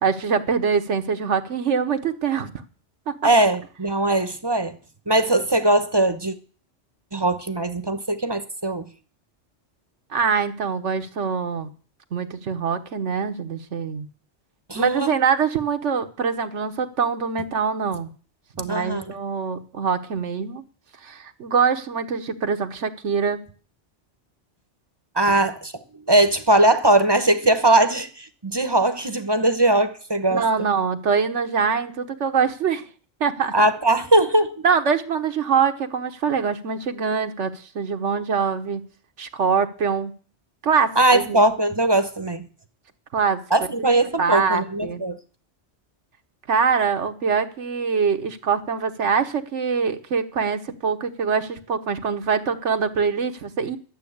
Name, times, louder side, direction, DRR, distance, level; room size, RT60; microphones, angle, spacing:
voice 1, 0.0-2.5 3.1-3.2 10.1-11.7 12.1-14.1 14.7-18.1 18.6-20.6 21.0-23.4 25.3-25.5 30.3-32.8 33.2-33.6 34.6-38.8 39.2-40.1 40.6-41.5 43.1-43.4 44.2-45.0 46.5-53.8, right 6 dB, 80° right, 1.4 m, -24 dB
voice 2, 3.2-4.8 5.1-6.3 7.1-8.8 14.7-15.1 18.6-19.1 25.1-25.7 26.1-30.5 33.5-34.6 41.0-42.4 43.5-45.2, right 1 dB, 25° right, 0.9 m, -20 dB
12.0 x 7.5 x 8.5 m
omnidirectional pair, 1.2 m